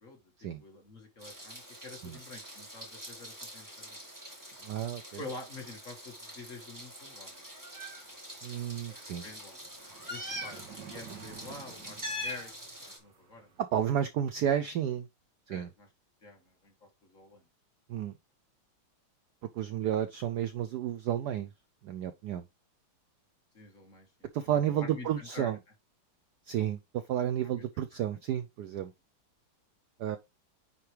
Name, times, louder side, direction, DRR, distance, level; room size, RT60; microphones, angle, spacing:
voice 1, 0.0-4.0 5.1-7.4 8.9-9.6 10.1-13.6 15.5-15.9 16.2-16.7 17.0-17.5 23.5-24.1 24.5-25.6 27.4-27.6 27.9-28.1, left 2 dB, 40° left, 1.9 m, -48 dB
Meow, 1.2-13.0, equal, 10° right, 1.5 m, -44 dB
voice 2, 4.6-5.0 8.4-9.2 13.6-15.1 15.5-15.7 17.9-18.1 19.5-21.5 21.8-22.4 24.3-25.6 26.5-26.8 27.1-28.9 30.0-30.2, right 10 dB, 85° right, 0.8 m, -31 dB
sound 1, 7.5-7.6 7.9-13.6, right 6 dB, 60° right, 2.2 m, -52 dB
9.4 x 4.4 x 3.3 m
omnidirectional pair, 2.4 m